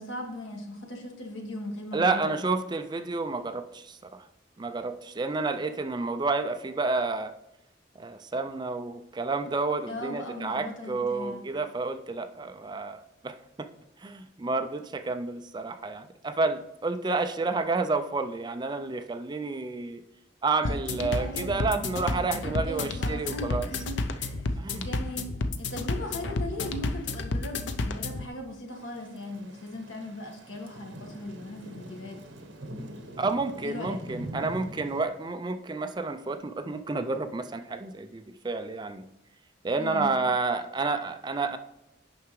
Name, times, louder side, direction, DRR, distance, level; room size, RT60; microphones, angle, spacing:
voice 1, 0.0-2.4 9.8-11.4 20.6-32.2 33.6-34.0 39.8-40.1, left 1 dB, 85° left, 1 dB, 1.6 m, -39 dB
voice 2, 1.9-4.3 4.6-7.3 8.0-13.7 14.0-20.0 20.4-23.7 24.6-24.9 33.2-39.0 39.6-41.6, right 3 dB, 25° right, 9 dB, 0.4 m, -30 dB
sound 1, 20.6-28.3, left 2 dB, 70° left, 0.5 m, -31 dB
Thunder / Rain, 28.7-35.1, right 1 dB, 70° right, 1.1 m, -43 dB
9.3 x 5.7 x 3.1 m, 0.88 s
head